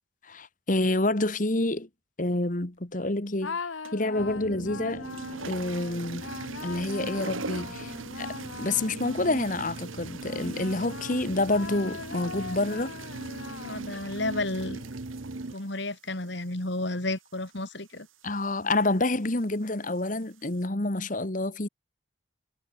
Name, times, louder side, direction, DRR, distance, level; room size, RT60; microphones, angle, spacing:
voice 1, 0.2-1.9 2.2-3.6 3.9-5.1 5.4-6.3 6.6-12.9 18.2-21.7, left 2 dB, 40° left, 1.6 m, -28 dB
sound 1, 3.4-9.6 10.2-14.1, left 4 dB, 80° left, 1.1 m, -41 dB
sound 2, 3.8-4.2 4.8-20.7, right 5 dB, 85° right, 2.9 m, -45 dB
sound 3, 4.1-15.5, right 2 dB, 60° right, 0.9 m, -40 dB
voice 2, 13.6-14.8 15.5-18.1, left 2 dB, 60° left, 3.1 m, -32 dB
head